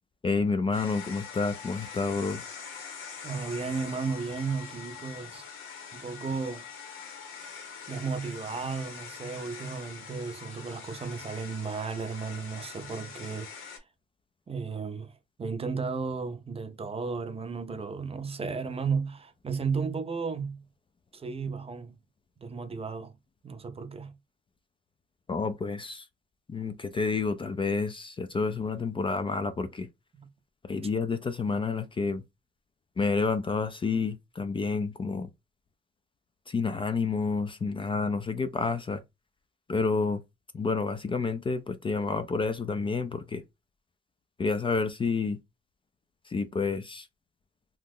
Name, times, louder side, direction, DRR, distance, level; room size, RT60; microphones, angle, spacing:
voice 1, 0.2-2.4 25.3-26.0 26.5-29.9 30.7-32.2 33.0-35.3 36.5-39.0 39.7-40.2 40.5-43.4 44.4-45.4 46.3-47.1, left 4 dB, 25° left, 0.4 m, -29 dB
sound 1, 0.7-13.8, left 6 dB, 85° left, 0.9 m, -44 dB
voice 2, 3.2-5.5 5.9-6.7 7.9-13.8 14.5-15.1 15.4-20.6 21.1-22.0 22.4-23.2 23.4-24.1 30.1-30.3, right 5 dB, 30° right, 0.5 m, -34 dB
2.8 x 2.1 x 3.5 m
cardioid pair, 90°, 20 cm